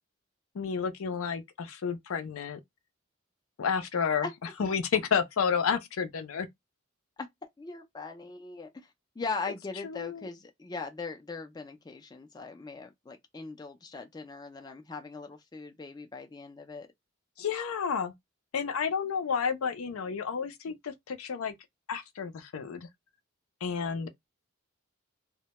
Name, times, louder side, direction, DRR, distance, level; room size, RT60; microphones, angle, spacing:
voice 1, 0.5-2.6 3.6-4.3 4.6-6.5 9.8-10.3 17.4-18.1 18.5-21.5 21.9-22.9 23.6-24.1, left 6 dB, 85° left, 0.5 m, -31 dB
voice 2, 7.6-16.9, left 4 dB, 20° left, 0.3 m, -40 dB
2.1 x 2.1 x 2.8 m
head